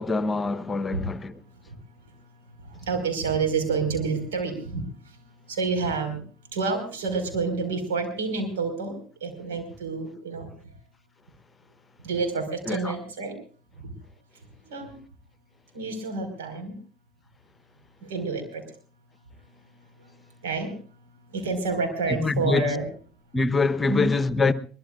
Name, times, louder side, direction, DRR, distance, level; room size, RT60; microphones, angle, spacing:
voice 1, 0.0-1.3 12.7-12.8 22.1-22.6 23.3-24.5, left 3 dB, 25° left, 1.0 m, -24 dB
voice 2, 2.9-4.8 5.5-6.2 6.5-8.9 9.2-10.5 12.0-13.3 14.7-14.9 15.7-16.7 18.1-18.6 20.4-20.7 21.3-22.9 23.9-24.1, right 4 dB, 80° right, 5.0 m, -28 dB
23.0 x 20.0 x 2.5 m
hypercardioid pair, 70°, 0 cm